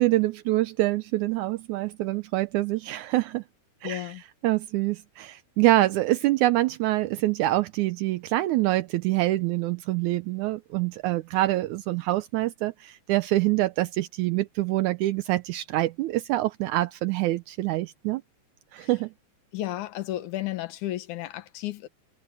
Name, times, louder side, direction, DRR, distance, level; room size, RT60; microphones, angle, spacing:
voice 1, 0.0-3.4 3.8-4.1 4.4-18.2 18.7-19.1, right 17 dB, 80° right, 2.0 m, -25 dB
voice 2, 3.8-4.2 18.8-18.9 19.5-21.9, left 14 dB, 80° left, 2.5 m, -33 dB
omnidirectional pair, 3.6 m